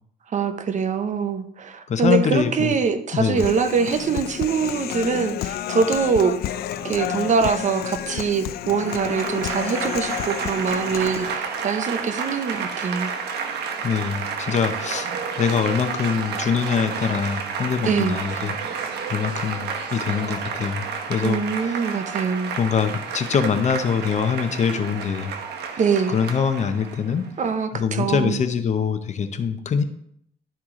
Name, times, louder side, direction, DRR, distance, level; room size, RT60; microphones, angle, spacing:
voice 1, 0.3-6.4 6.8-13.1 17.8-18.2 21.2-22.5 25.8-26.2 27.4-28.4, right 5 dB, 45° right, 10 dB, 0.7 m, -23 dB
voice 2, 1.9-2.7 3.1-3.4 13.8-15.1 15.4-18.5 19.1-21.7 22.6-25.3 26.1-27.3 27.7-29.8, left 6 dB, 45° left, 9 dB, 0.8 m, -24 dB
Human voice, 3.4-11.4, left 11 dB, 70° left, 0.4 m, -31 dB
Applause / Crowd, 8.7-27.3, right 5 dB, 80° right, 0.9 m, -31 dB
11.5 x 4.6 x 3.7 m, 0.71 s
cardioid pair, 125°, 17 cm